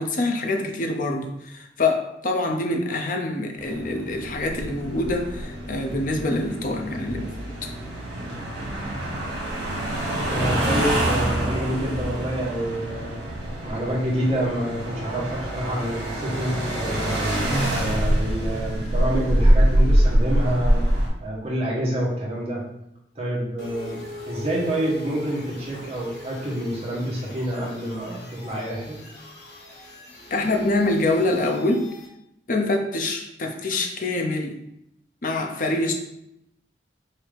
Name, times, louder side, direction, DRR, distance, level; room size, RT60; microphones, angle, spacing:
voice 1, 0.0-7.3 7.6-7.7 30.3-31.9 32.5-34.6 35.2-35.9, left 2 dB, 50° left, 3 dB, 0.7 m, -25 dB
sound 1, 3.6-21.1, right 1 dB, 75° right, 1.6 m, -25 dB
voice 2, 10.3-13.2 13.6-17.2 17.7-20.8 21.2-22.6 23.1-24.0 24.2-29.0, right 1 dB, 35° right, -5 dB, 1.4 m, -27 dB
sound 2, 23.6-32.1, left 2 dB, 80° left, 1.2 m, -41 dB
5.6 x 2.7 x 3.4 m, 0.80 s
head